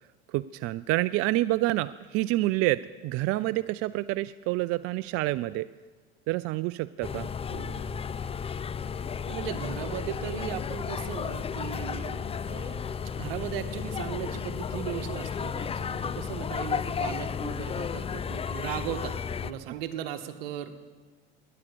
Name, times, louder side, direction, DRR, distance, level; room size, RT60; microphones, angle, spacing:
voice 1, 0.3-5.7 6.3-7.3 19.7-19.8, right 17 dB, 50° right, 17 dB, 0.4 m, -28 dB
sound 1, 7.0-19.5, left 7 dB, 20° left, 0.5 m, -33 dB
voice 2, 7.5-8.1 9.3-20.7, right 10 dB, 75° right, 8 dB, 1.4 m, -37 dB
16.5 x 11.0 x 6.8 m, 1.4 s
hypercardioid pair, 90°, 30 cm